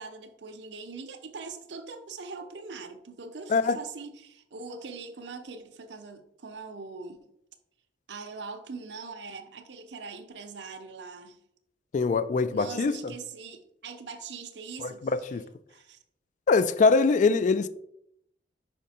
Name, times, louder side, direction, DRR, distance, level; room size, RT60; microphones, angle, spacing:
voice 1, 0.0-7.2 8.1-11.4 12.5-15.4 15.7-16.0, right 4 dB, 70° right, 0.7 m, -42 dB
voice 2, 11.9-13.0 14.8-15.4 16.5-17.7, left 4 dB, 45° left, 0.3 m, -23 dB
5.3 x 5.1 x 4.2 m
head